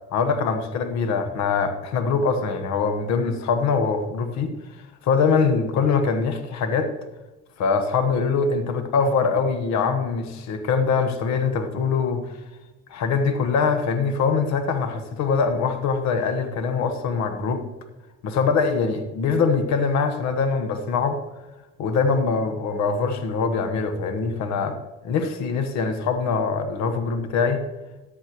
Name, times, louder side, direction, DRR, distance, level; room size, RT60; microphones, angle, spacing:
voice 1, 0.1-4.5 5.0-6.9 7.6-12.4 12.9-17.7 18.2-21.2 21.8-24.8 25.0-27.6, left 5 dB, 65° left, 7 dB, 1.3 m, -23 dB
14.0 x 10.5 x 3.0 m, 1.1 s
hypercardioid pair, 65°, 30 cm